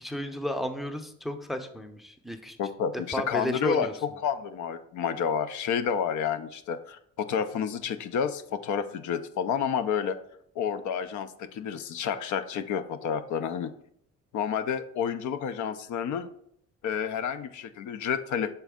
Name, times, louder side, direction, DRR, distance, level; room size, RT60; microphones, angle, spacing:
voice 1, 0.0-2.6 3.1-3.9, equal, ahead, 7 dB, 0.5 m, -33 dB
voice 2, 2.6-10.2 10.6-13.7 14.3-16.3 16.8-18.6, left 7 dB, 75° left, 11 dB, 0.5 m, -30 dB
6.8 x 4.1 x 3.5 m, 0.71 s
cardioid pair, 90°, 30 cm